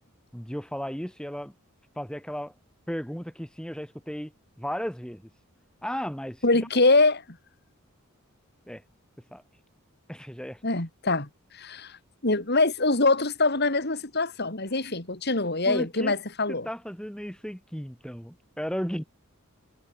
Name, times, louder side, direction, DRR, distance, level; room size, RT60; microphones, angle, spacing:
voice 1, 0.3-1.5 1.9-2.5 2.9-4.3 4.6-5.3 5.8-6.4 8.7-8.8 9.3-9.4 10.1-10.6 15.7-16.1 16.6-19.0, equal, 5° left, 6.7 m, -34 dB
voice 2, 6.4-7.4 10.6-11.3 11.5-12.0 12.2-16.7, left 3 dB, 50° left, 3.4 m, -24 dB
head